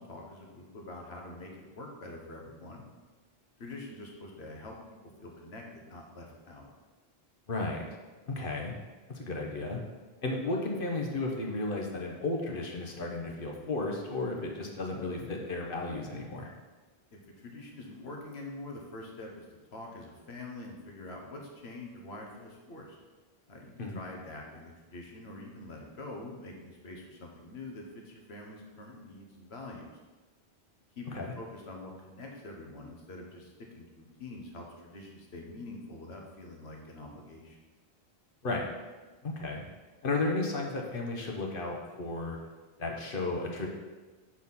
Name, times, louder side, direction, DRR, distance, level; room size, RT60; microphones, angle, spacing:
voice 1, 0.0-2.9 3.6-4.8 5.2-6.7 17.1-19.4 19.7-23.0 23.5-29.9 31.0-37.6, left 2 dB, 80° left, 0 dB, 1.4 m, -45 dB
voice 2, 7.5-7.9 8.3-8.7 9.1-9.8 10.2-16.5 23.8-24.0 31.1-31.3 38.4-38.7 39.2-39.6 40.0-42.4 42.8-43.7, left 2 dB, 60° left, 0 dB, 1.2 m, -33 dB
6.2 x 4.4 x 5.5 m, 1.3 s
omnidirectional pair, 1.0 m